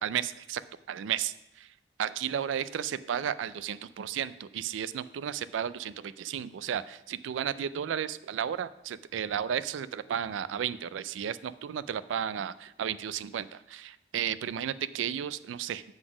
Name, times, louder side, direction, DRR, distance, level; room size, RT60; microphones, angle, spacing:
voice 1, 0.0-1.7 2.0-15.8, right 9 dB, 85° right, 16 dB, 0.3 m, -33 dB
7.9 x 4.0 x 6.0 m, 0.88 s
head